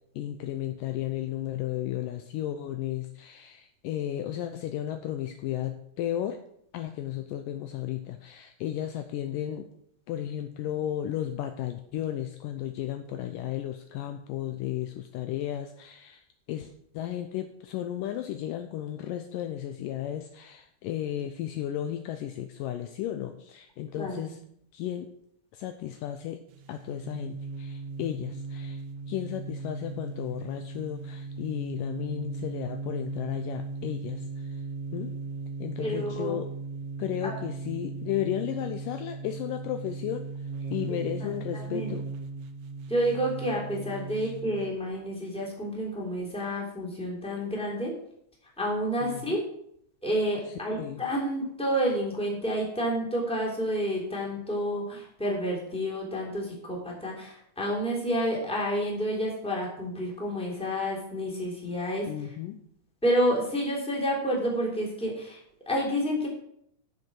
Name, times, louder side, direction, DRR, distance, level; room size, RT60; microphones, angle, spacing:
voice 1, 0.2-6.4 6.7-9.7 10.1-24.4 24.7-25.1 25.5-34.6 34.9-35.1 35.6-36.5 37.0-40.3 40.7-42.0 44.1-44.3 49.0-49.4 50.5-51.0 62.1-62.6, left 11 dB, 75° left, 7 dB, 2.1 m, -34 dB
voice 2, 24.0-24.3 35.8-36.4 37.2-37.3 41.2-41.9 42.9-47.9 48.6-49.4 50.0-62.1 63.0-65.4 65.7-66.3, equal, ahead, -3 dB, 2.5 m, -29 dB
sound 1, 26.5-44.8, right 4 dB, 70° right, 2.3 m, -37 dB
12.0 x 6.8 x 6.2 m, 0.71 s
omnidirectional pair, 4.2 m